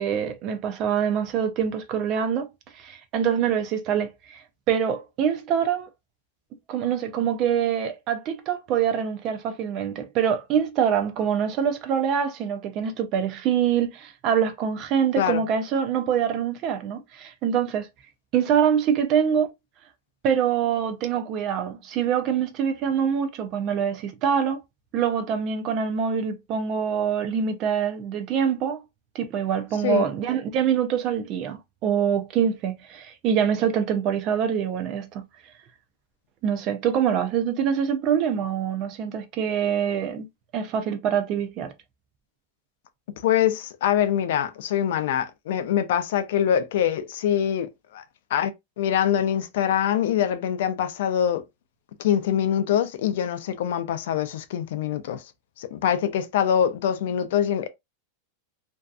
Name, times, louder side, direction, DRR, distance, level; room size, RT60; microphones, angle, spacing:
voice 1, 0.0-2.5 2.8-5.9 6.7-17.9 18.3-19.5 20.2-24.6 24.9-28.8 29.1-35.2 36.4-40.3 40.5-41.7, right 8 dB, 30° right, 0.4 m, -25 dB
voice 2, 43.2-48.0 48.3-48.5 48.8-51.4 52.0-55.2 55.6-57.7, left 9 dB, 65° left, 0.4 m, -24 dB
2.6 x 2.3 x 2.3 m
supercardioid pair, 165°, 0 cm